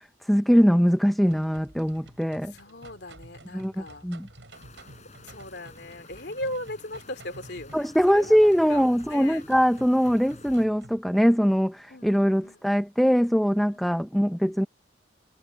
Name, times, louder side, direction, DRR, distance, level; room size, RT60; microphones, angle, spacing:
voice 1, 0.3-2.5 3.5-4.3 7.7-14.7, equal, ahead, 0.7 m, -22 dB
sound 1, 1.3-11.0, right 1 dB, 75° right, 4.7 m, -50 dB
voice 2, 2.5-4.1 5.2-9.5 11.9-12.7 13.7-14.0, left 1 dB, 60° left, 3.0 m, -39 dB
sound 2, 4.5-10.7, left 3 dB, 35° left, 7.6 m, -52 dB
head